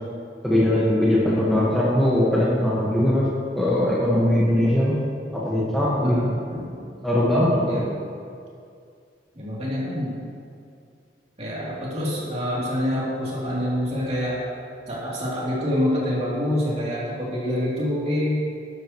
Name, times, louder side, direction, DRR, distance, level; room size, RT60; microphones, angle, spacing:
voice 1, 0.4-3.3 3.5-5.0 5.3-6.2 7.0-7.8, left 1 dB, ahead, -8 dB, 1.5 m, -20 dB
voice 2, 6.0-6.8 7.7-7.9 9.3-10.2 11.4-14.4 14.9-18.4, left 1 dB, 35° right, -7 dB, 3.1 m, -26 dB
13.5 x 11.0 x 3.1 m, 2.3 s
head